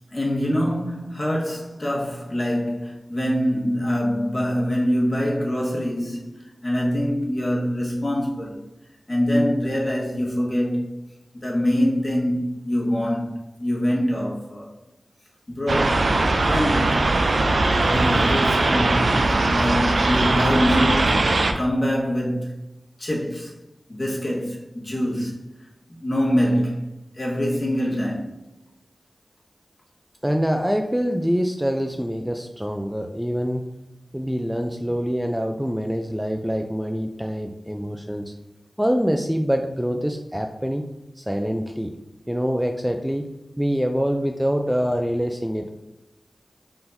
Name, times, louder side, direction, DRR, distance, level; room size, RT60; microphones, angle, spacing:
voice 1, 0.1-8.6 9.1-11.0 11.3-14.7 15.5-17.0 17.7-22.6 23.0-23.5 23.9-25.4 26.0-26.9 27.1-28.3, equal, 35° left, 1.3 m, -24 dB
sound 1, 15.7-21.5, right 2 dB, 70° right, 0.4 m, -20 dB
voice 2, 30.2-33.7 34.1-38.3 38.8-40.8 41.2-41.9 42.3-43.3 43.6-45.8, equal, 5° right, 0.4 m, -25 dB
4.3 x 3.8 x 2.6 m
cardioid pair, 45°, 0 cm